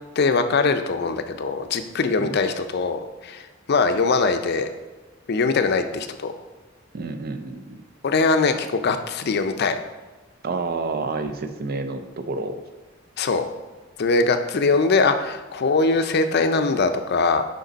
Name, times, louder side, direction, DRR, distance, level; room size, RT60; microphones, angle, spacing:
voice 1, 0.2-3.4 3.7-4.7 5.3-6.3 8.0-9.8 13.2-13.4 14.0-17.5, left 4 dB, 55° left, 8 dB, 0.5 m, -21 dB
voice 2, 6.9-7.8 10.4-12.6, right 3 dB, 50° right, 8 dB, 0.5 m, -29 dB
6.5 x 5.2 x 4.0 m, 1.2 s
head